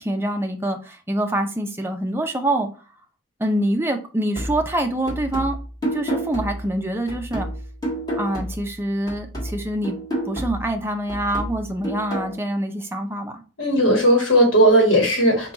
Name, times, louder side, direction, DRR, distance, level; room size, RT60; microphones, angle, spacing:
voice 1, 0.0-2.7 3.4-5.6 5.9-7.5 8.2-10.0 10.3-13.4, right 1 dB, 10° right, 0.5 m, -25 dB
sound 1, 4.3-8.8 9.1-12.3, right 1 dB, 20° left, 1.4 m, -30 dB
voice 2, 13.6-15.5, right 1 dB, 65° left, 1.3 m, -16 dB
4.8 x 2.3 x 3.9 m
head